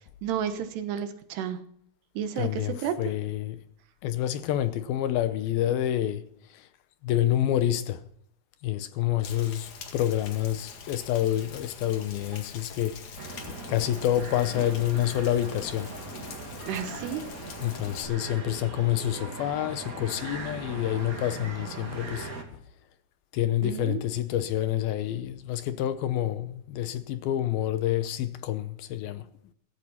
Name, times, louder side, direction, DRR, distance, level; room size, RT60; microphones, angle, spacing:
voice 1, 0.2-1.6 2.2-2.9 16.7-17.2 23.6-24.0, right 9 dB, 80° right, 3.4 m, -31 dB
voice 2, 2.4-3.6 4.0-6.7 7.0-8.0 8.6-15.9 17.6-22.3 23.3-29.3, left 12 dB, 75° left, 2.5 m, -28 dB
Rain, 9.2-18.1, left 6 dB, 55° left, 2.8 m, -44 dB
sound 1, 13.2-22.4, right 3 dB, 25° right, 2.2 m, -40 dB
16.0 x 15.0 x 4.3 m
omnidirectional pair, 4.7 m